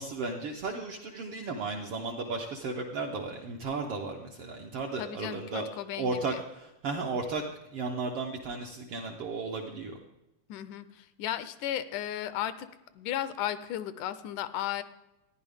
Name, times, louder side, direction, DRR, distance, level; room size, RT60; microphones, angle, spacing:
voice 1, 0.0-5.6 6.0-7.4 7.7-10.0, right 3 dB, 70° right, 1 dB, 1.3 m, -34 dB
voice 2, 5.0-6.4 10.5-12.7 12.9-14.8, left 11 dB, 85° left, 13 dB, 2.1 m, -35 dB
14.5 x 10.5 x 3.5 m, 0.95 s
omnidirectional pair, 3.6 m